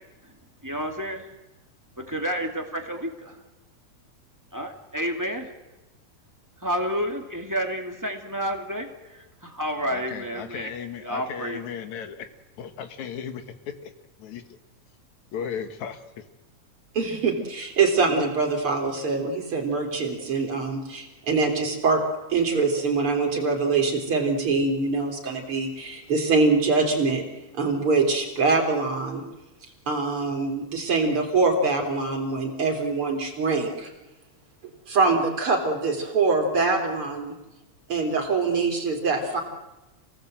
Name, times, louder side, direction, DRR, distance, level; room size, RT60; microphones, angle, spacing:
voice 1, 0.6-1.3 2.0-3.4 4.5-5.5 6.6-10.7 11.0-11.6, equal, 5° right, 2 dB, 1.9 m, -30 dB
voice 2, 9.8-12.3 12.6-13.9 14.2-14.4 15.3-16.2, left 7 dB, 75° left, 8 dB, 3.0 m, -36 dB
voice 3, 16.9-22.0 22.3-27.2 27.6-29.2 29.9-33.9 34.9-37.4 37.9-39.4, right 4 dB, 45° right, 2 dB, 4.2 m, -24 dB
28.5 x 18.0 x 7.9 m, 1.0 s
omnidirectional pair, 3.3 m